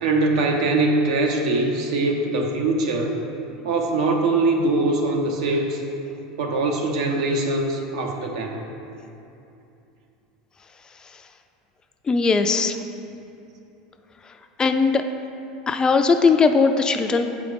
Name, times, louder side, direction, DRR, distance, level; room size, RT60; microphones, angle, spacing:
voice 1, 0.0-3.2 3.6-5.8 6.4-8.6, right 2 dB, 80° right, 2 dB, 0.8 m, -22 dB
voice 2, 12.1-12.8 14.6-15.0 15.7-17.3, left 4 dB, 20° left, 7 dB, 0.3 m, -19 dB
7.5 x 4.9 x 3.5 m, 2.8 s
supercardioid pair, 115°, 3 cm